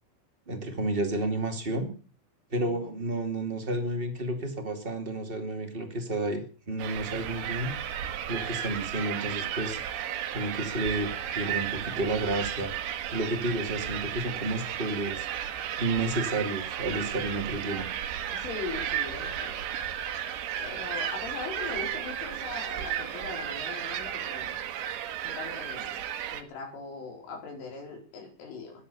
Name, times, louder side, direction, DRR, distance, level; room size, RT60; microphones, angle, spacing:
voice 1, 0.5-1.9 2.5-7.7 8.3-9.8 10.3-11.1 11.3-12.7 13.1-15.3 15.8-17.9, right 2 dB, 20° right, 5 dB, 1.3 m, -31 dB
sound 1, 6.8-26.4, right 10 dB, 70° right, 3.5 m, -34 dB
voice 2, 18.3-19.7 20.6-24.6 25.2-26.0 26.3-28.7, left 4 dB, 85° left, 2 dB, 7.1 m, -40 dB
21.5 x 8.4 x 7.0 m, 0.40 s
omnidirectional pair, 5.5 m